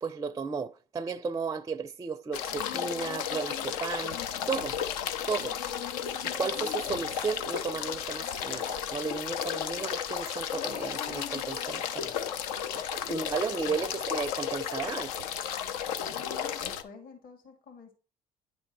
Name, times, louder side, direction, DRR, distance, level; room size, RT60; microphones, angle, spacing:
voice 1, 0.0-4.2 4.5-4.8 5.3-5.6 6.2-12.1 12.5-15.3, right 5 dB, 20° right, 0.4 m, -34 dB
sound 1, 2.3-16.8, left 9 dB, 80° left, 0.6 m, -33 dB
voice 2, 13.1-14.0 16.0-16.3 16.6-17.9, left 4 dB, 50° left, 1.8 m, -50 dB
9.5 x 3.5 x 4.6 m
hypercardioid pair, 65°, 18 cm